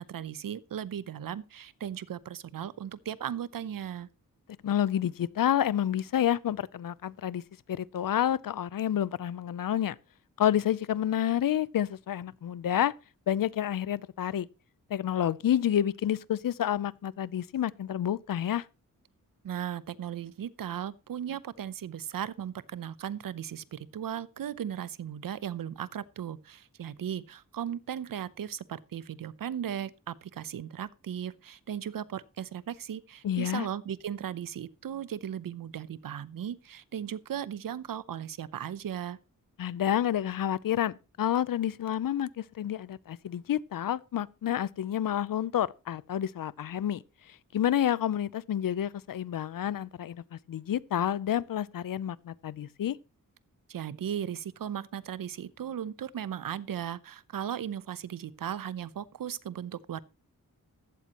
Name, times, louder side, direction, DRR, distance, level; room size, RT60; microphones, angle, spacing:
voice 1, 0.0-4.1 19.4-39.2 53.7-60.0, right 9 dB, 85° right, 0.7 m, -37 dB
voice 2, 4.6-7.4 7.7-10.0 10.4-12.9 13.3-14.5 14.9-18.6 33.2-33.7 39.6-47.0 47.5-53.0, left 10 dB, 80° left, 0.7 m, -29 dB
15.5 x 12.0 x 3.0 m
wide cardioid pair, 80°, 33 cm